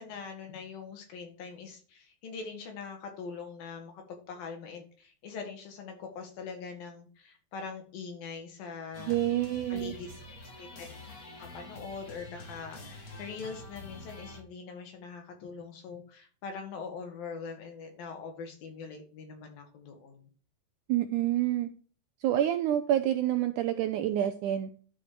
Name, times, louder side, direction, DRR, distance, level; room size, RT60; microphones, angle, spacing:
voice 1, 0.0-9.2 9.7-10.1 10.6-10.9 11.5-20.3, left 5 dB, 75° left, 4 dB, 4.0 m, -42 dB
sound 1, 8.9-14.4, left 2 dB, 35° left, 1.6 m, -47 dB
voice 2, 9.0-9.9 20.9-21.7 22.2-24.7, right 12 dB, 80° right, 8 dB, 1.9 m, -28 dB
11.5 x 5.0 x 4.6 m, 0.40 s
omnidirectional pair, 4.2 m